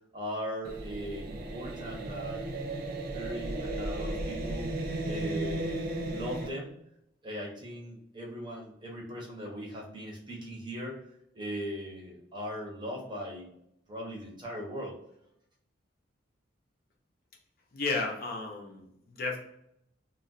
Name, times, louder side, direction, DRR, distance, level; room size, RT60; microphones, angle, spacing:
voice 1, 0.1-2.5 3.1-4.7 5.0-5.8 6.1-6.7 7.2-11.0 11.3-13.5 13.9-15.0, equal, 25° right, -2 dB, 0.7 m, -39 dB
sound 1, 0.6-6.5, right 2 dB, 50° right, 0.4 m, -35 dB
voice 2, 17.7-19.4, left 3 dB, 50° left, 1 dB, 0.5 m, -33 dB
2.2 x 2.2 x 3.8 m, 0.76 s
head